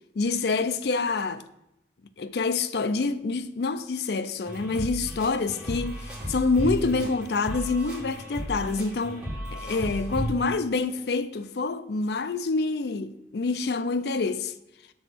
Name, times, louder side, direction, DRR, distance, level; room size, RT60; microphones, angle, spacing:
voice 1, 0.2-1.4 2.2-6.0 6.3-14.5, left 3 dB, 65° left, 0.4 m, -27 dB
sound 1, 4.4-10.3, equal, 5° right, 2.6 m, -34 dB
6.2 x 4.0 x 6.1 m
head